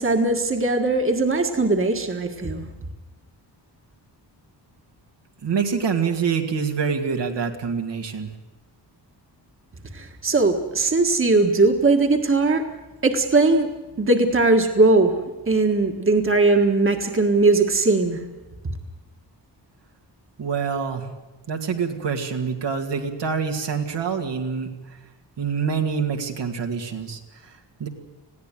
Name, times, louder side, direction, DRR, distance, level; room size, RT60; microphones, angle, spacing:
voice 1, 0.0-2.7 9.9-12.6 13.0-13.7 14.0-15.1 15.5-18.2, right 3 dB, 30° right, 4 dB, 1.7 m, -19 dB
voice 2, 5.4-8.3 20.4-21.1 21.5-25.0 25.4-27.9, right 6 dB, 75° right, 3 dB, 2.3 m, -26 dB
20.5 x 15.5 x 9.1 m, 1.1 s
wide cardioid pair, 130°, 43 cm